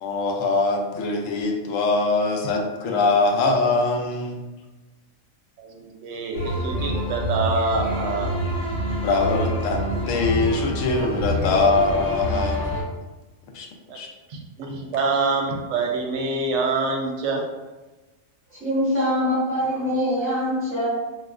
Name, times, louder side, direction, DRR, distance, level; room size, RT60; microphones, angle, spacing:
voice 1, 0.0-4.4 9.0-12.6 13.5-13.7 13.9-14.1, left 3 dB, 75° left, 2 dB, 1.0 m, -22 dB
voice 2, 5.6-8.4 13.9-14.0 14.3-17.5, right 3 dB, 70° right, 1 dB, 0.9 m, -26 dB
sound 1, 6.3-12.8, equal, 40° left, 0.7 m, -27 dB
voice 3, 18.5-20.9, equal, 10° right, -9 dB, 1.3 m, -23 dB
4.0 x 2.3 x 2.4 m, 1.1 s
omnidirectional pair, 1.4 m